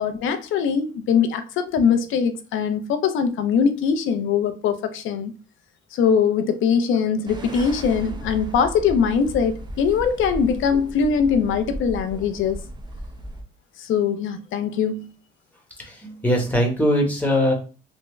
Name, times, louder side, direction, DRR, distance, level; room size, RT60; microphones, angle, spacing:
voice 1, 0.0-5.3 5.9-12.6 13.8-15.1, left 6 dB, 80° left, 0.5 m, -22 dB
sound 1, 7.2-13.4, right 1 dB, 20° right, 0.7 m, -35 dB
voice 2, 15.8-17.5, equal, 10° left, 1.1 m, -21 dB
3.5 x 2.1 x 3.0 m
cardioid pair, 90°, 20 cm